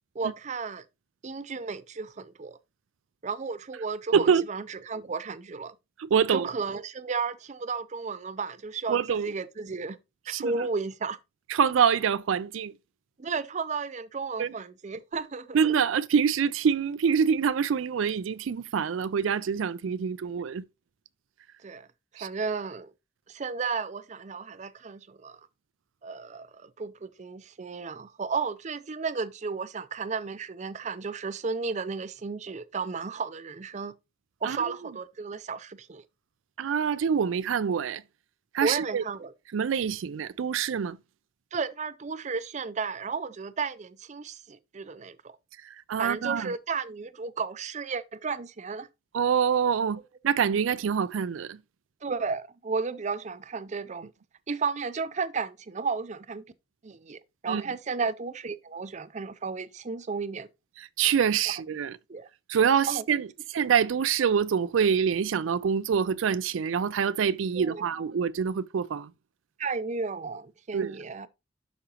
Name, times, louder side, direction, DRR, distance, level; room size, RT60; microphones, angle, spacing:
voice 1, 0.1-0.8 1.2-2.6 3.2-5.7 6.3-10.0 10.3-11.2 13.2-15.6 21.6-21.9 22.1-22.9 23.3-25.4 26.0-33.9 34.4-36.0 38.6-39.3 41.5-45.4 46.0-48.9 52.0-54.1 54.5-56.4 56.8-60.5 61.5-61.6 62.1-62.3 62.9-63.0 67.5-68.1 69.6-71.3, right 4 dB, 40° right, 0.5 m, -33 dB
voice 2, 4.1-4.4 6.0-6.5 8.9-9.3 10.3-10.6 11.5-12.7 14.4-14.5 15.5-20.6 22.2-22.3 34.4-34.6 36.6-38.0 38.5-39.0 39.5-41.0 45.6-46.5 49.1-50.0 50.2-51.6 57.5-57.6 60.8-62.0 62.5-69.1 70.7-71.0, right 7 dB, 90° right, 0.4 m, -25 dB
11.5 x 5.0 x 2.9 m
head